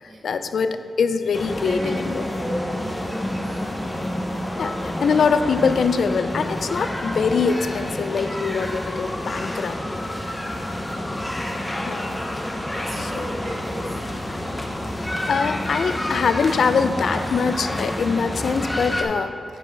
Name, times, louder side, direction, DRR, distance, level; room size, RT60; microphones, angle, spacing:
voice 1, 0.2-2.2 4.6-9.7 11.8-12.2 13.0-13.2 15.3-19.3, left 5 dB, 70° left, 10 dB, 0.4 m, -23 dB
sound 1, 1.3-19.0, left 1 dB, 10° left, 0.8 m, -28 dB
voice 2, 1.6-3.8 6.8-7.0 9.4-10.9 12.7-14.0, right 1 dB, 70° right, -4 dB, 2.0 m, -36 dB
9.2 x 6.2 x 4.5 m, 2.4 s
wide cardioid pair, 120°, 0 cm